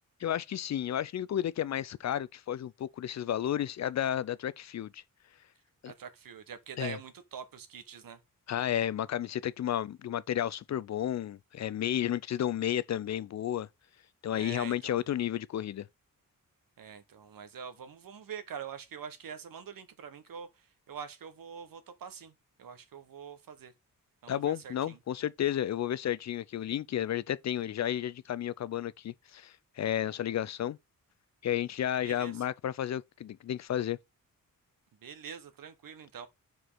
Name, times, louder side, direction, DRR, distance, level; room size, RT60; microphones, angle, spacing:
voice 1, 0.2-5.0 5.8-5.9 6.8-7.0 8.5-13.7 14.2-15.9 24.3-30.8 31.4-34.0, left 11 dB, 55° left, 0.4 m, -32 dB
voice 2, 5.9-8.2 14.3-15.0 16.8-20.5 20.9-22.3 22.6-23.7 24.2-25.0 32.0-32.3 35.0-36.3, right 7 dB, 75° right, 1.2 m, -44 dB
5.0 x 4.7 x 5.5 m
wide cardioid pair, 170°, 34 cm